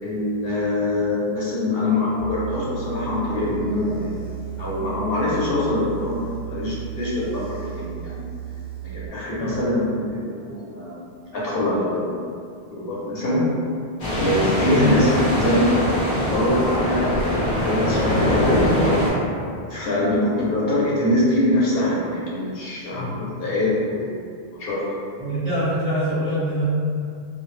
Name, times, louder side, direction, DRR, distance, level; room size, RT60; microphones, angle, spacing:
voice 1, 0.0-4.3 4.6-8.2 8.8-11.1 11.3-12.2 12.7-13.5 14.1-15.8 16.3-18.6 19.7-24.8, left 1 dB, 70° left, -7 dB, 0.8 m, -24 dB
sound 1, 2.2-9.1, right 13 dB, 60° right, 0.6 m, -34 dB
sound 2, 14.0-19.1, left 1 dB, 45° left, 0.6 m, -22 dB
voice 2, 25.2-26.6, equal, 10° right, -14 dB, 0.6 m, -25 dB
2.0 x 2.0 x 3.0 m, 2.4 s
omnidirectional pair, 1.0 m